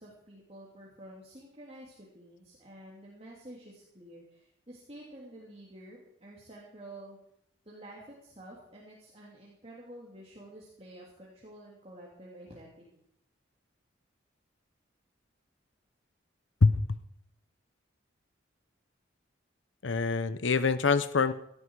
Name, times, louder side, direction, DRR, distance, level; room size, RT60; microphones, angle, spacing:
voice 1, 0.0-7.2 7.6-13.0, right 1 dB, 30° right, -4 dB, 3.1 m, -50 dB
voice 2, 19.8-21.3, left 4 dB, 75° left, 14 dB, 0.8 m, -25 dB
17.0 x 13.5 x 4.8 m, 0.73 s
head